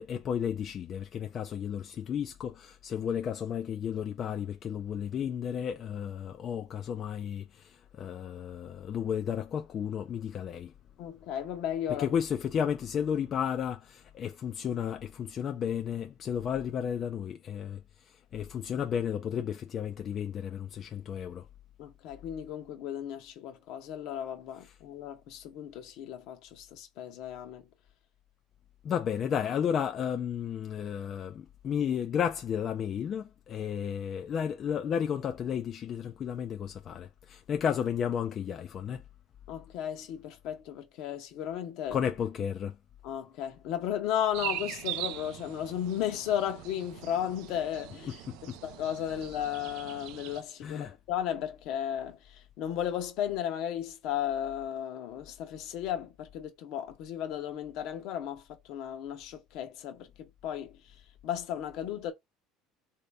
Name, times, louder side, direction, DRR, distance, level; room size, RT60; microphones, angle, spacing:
voice 1, 0.0-10.7 11.9-17.8 18.3-21.5 24.6-24.8 28.8-39.0 41.9-42.8 48.1-48.6 50.6-50.9, left 8 dB, 40° left, 0.4 m, -33 dB
voice 2, 11.0-12.1 21.8-27.6 39.5-42.0 43.0-48.2 48.6-52.2 52.6-60.7 61.2-62.1, left 10 dB, 65° left, 0.9 m, -35 dB
sound 1, 44.3-50.4, right 14 dB, 70° right, 0.4 m, -41 dB
3.2 x 2.8 x 3.4 m
supercardioid pair, 120°, 0 cm